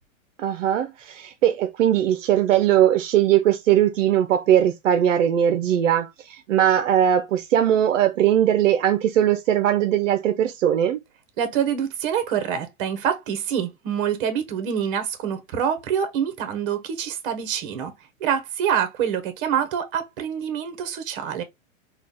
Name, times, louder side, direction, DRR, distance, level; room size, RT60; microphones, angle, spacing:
voice 1, 0.4-11.0, right 10 dB, 70° right, 0.7 m, -20 dB
voice 2, 11.4-17.9 18.2-21.4, right 8 dB, 45° right, 1.2 m, -26 dB
3.7 x 2.4 x 3.6 m
hypercardioid pair, 140°, 39 cm